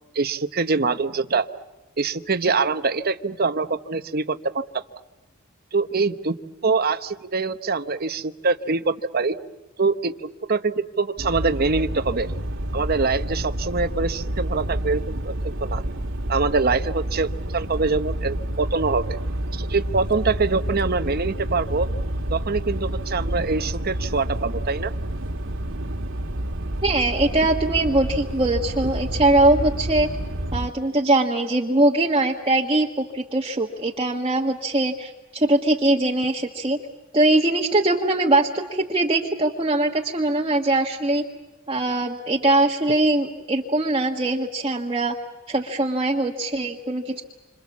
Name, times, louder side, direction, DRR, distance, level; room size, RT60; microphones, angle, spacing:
voice 1, 0.1-1.5 2.0-4.8 5.7-6.3 6.6-9.4 9.8-12.3 12.7-15.8 16.3-19.2 19.5-21.9 22.3-24.9, right 4 dB, 50° right, 10 dB, 1.0 m, -24 dB
sound 1, 11.2-30.7, right 1 dB, 70° right, 1.8 m, -29 dB
voice 2, 26.8-30.1 30.5-36.8 37.1-41.2 41.7-45.1 45.5-47.2, right 2 dB, 25° right, -1 dB, 1.5 m, -21 dB
28.0 x 26.5 x 7.3 m, 1.0 s
head